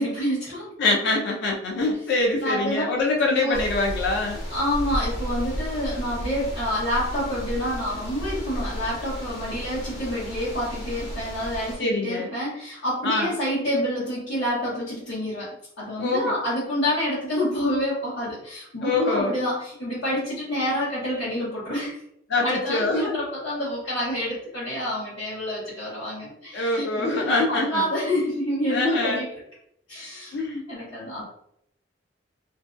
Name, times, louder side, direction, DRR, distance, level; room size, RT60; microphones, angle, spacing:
voice 1, 0.0-0.7 2.4-2.9 3.3-3.6 4.5-15.5 15.8-21.9 22.4-29.3 29.9-31.2, equal, 85° left, -11 dB, 1.0 m, -28 dB
voice 2, 0.8-4.4 11.8-12.3 13.0-13.3 16.0-16.3 18.8-19.4 22.3-23.2 26.2-27.9 28.7-29.2 30.3-30.6, left 2 dB, 65° left, 1 dB, 0.4 m, -24 dB
sound 1, 3.5-11.8, equal, 45° left, 1.1 m, -33 dB
2.5 x 2.2 x 2.4 m, 0.72 s
head